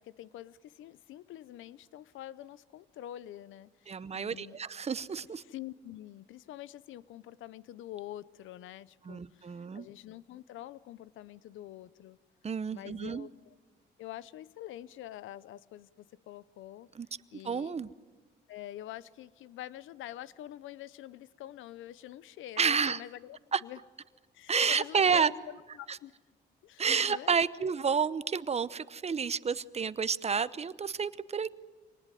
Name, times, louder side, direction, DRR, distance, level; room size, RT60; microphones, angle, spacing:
voice 1, 0.0-4.6 5.4-12.2 12.7-13.5 14.0-16.9 17.3-17.9 18.5-23.8 24.3-26.1 26.6-27.4, left 13 dB, 85° left, 0.8 m, -46 dB
voice 2, 3.9-5.4 9.0-9.9 12.4-13.3 16.9-17.1 17.4-17.9 22.6-23.0 23.5-23.6 24.5-25.3 25.9-26.0 26.8-31.5, right 6 dB, 30° right, 0.9 m, -30 dB
26.0 x 19.5 x 9.3 m
cardioid pair, 90°, 20 cm